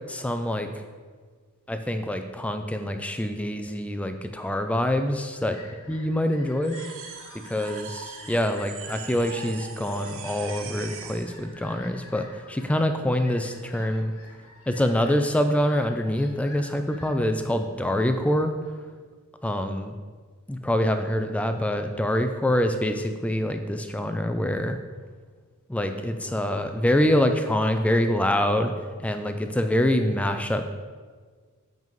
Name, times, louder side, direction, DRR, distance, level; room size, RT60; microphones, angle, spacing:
voice 1, 0.1-0.7 1.7-5.6 5.9-6.8 7.5-14.1 14.7-18.5 19.4-19.9 20.5-24.8 25.7-28.7 29.0-30.7, left 1 dB, 5° left, 7 dB, 0.3 m, -25 dB
Fowl, 5.1-18.9, left 3 dB, 70° left, 1.2 m, -49 dB
sound 1, 6.6-11.4, right 8 dB, 60° right, 0.5 m, -41 dB
7.6 x 5.2 x 3.1 m, 1.5 s
head